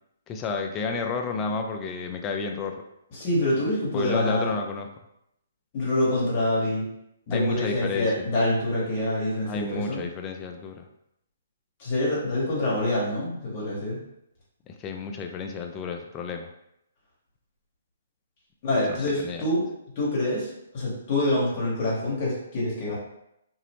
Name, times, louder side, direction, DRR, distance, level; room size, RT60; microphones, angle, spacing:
voice 1, 0.3-2.8 3.9-4.9 7.3-8.1 9.4-10.9 14.7-16.5 18.9-19.4, left 4 dB, 25° left, 4 dB, 0.3 m, -31 dB
voice 2, 3.1-4.5 5.7-6.8 7.3-10.0 11.8-14.0 18.6-19.6 20.0-20.5 20.7-23.0, left 1 dB, 45° left, -6 dB, 1.0 m, -26 dB
2.6 x 2.0 x 2.9 m, 0.79 s
hypercardioid pair, 135°, 0 cm